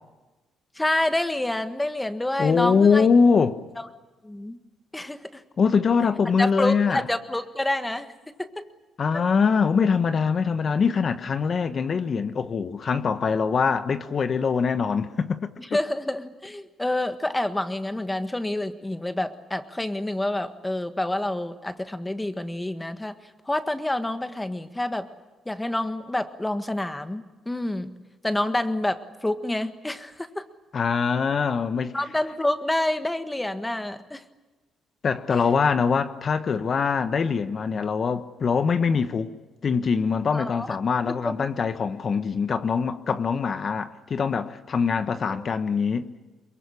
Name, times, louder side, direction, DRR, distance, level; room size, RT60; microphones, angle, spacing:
voice 1, 0.7-3.1 3.8-3.9 4.2-4.6 4.9-5.4 6.4-8.6 9.1-9.2 15.6-25.1 25.4-27.9 28.2-30.4 31.9-34.2 35.3-35.5 40.3-40.8 41.1-41.5 45.1-45.5, left 1 dB, 10° left, 1.6 m, -28 dB
voice 2, 2.4-3.6 5.6-7.0 9.0-15.5 30.7-31.9 35.0-39.3 39.6-46.1, left 5 dB, 45° left, 1.2 m, -23 dB
23.0 x 22.5 x 10.0 m
cardioid pair, 90°, 0 cm